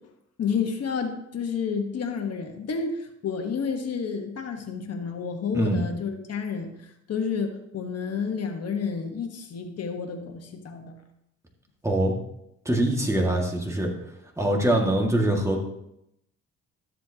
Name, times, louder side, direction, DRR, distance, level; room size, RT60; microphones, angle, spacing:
voice 1, 0.4-11.0, left 6 dB, 55° left, 5 dB, 1.4 m, -30 dB
voice 2, 5.5-5.8 11.8-12.1 12.7-13.9 14.4-15.6, right 1 dB, 10° right, 0 dB, 2.0 m, -23 dB
13.0 x 7.5 x 2.9 m, 0.80 s
cardioid pair, 90°, 30 cm